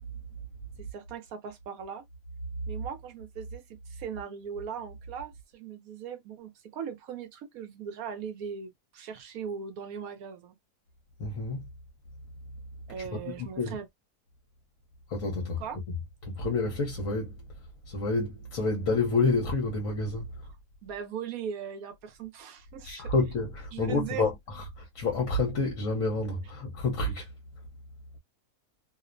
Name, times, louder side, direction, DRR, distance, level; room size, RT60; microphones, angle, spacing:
voice 1, 0.9-2.0 2.7-10.6 12.9-13.9 15.6-15.8 20.8-23.1 23.7-24.3, right 7 dB, 70° right, 0.9 m, -39 dB
voice 2, 11.2-11.7 12.9-13.8 15.1-16.0 16.2-17.4 17.9-20.5 22.8-27.3, left 3 dB, 60° left, 1.1 m, -29 dB
2.9 x 2.0 x 2.4 m
omnidirectional pair, 1.7 m